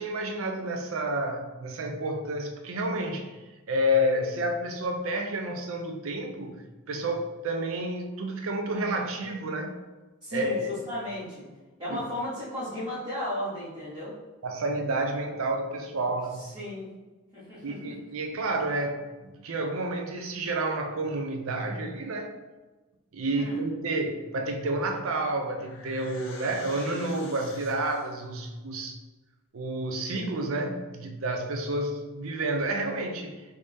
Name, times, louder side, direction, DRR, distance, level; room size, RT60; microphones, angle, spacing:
voice 1, 0.0-3.4 3.7-9.8 10.3-10.7 11.9-12.0 14.4-16.5 17.6-22.3 23.1-29.0 29.5-33.4, right 1 dB, 75° right, 4 dB, 0.5 m, -30 dB
voice 2, 10.2-11.4 11.8-14.1 16.4-16.9 17.3-17.9 23.3-23.6, left 1 dB, 20° right, -12 dB, 1.1 m, -35 dB
sound 1, 25.4-28.3, left 4 dB, 65° left, 0.5 m, -48 dB
3.4 x 2.7 x 3.3 m, 1.2 s
head